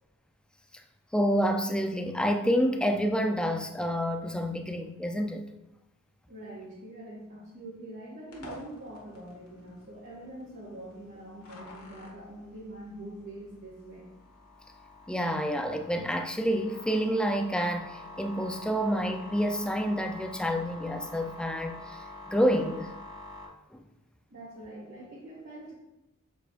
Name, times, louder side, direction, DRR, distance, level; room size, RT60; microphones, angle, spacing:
voice 1, 1.1-5.5 15.1-22.0 22.3-22.9 23.7-23.8, equal, 5° left, 0.4 m, -28 dB
voice 2, 6.3-14.1 24.3-25.7, right 1 dB, 55° right, 1.8 m, -44 dB
sound 1, 8.3-23.5, left 2 dB, 90° left, 1.6 m, -47 dB
7.7 x 6.7 x 2.5 m
head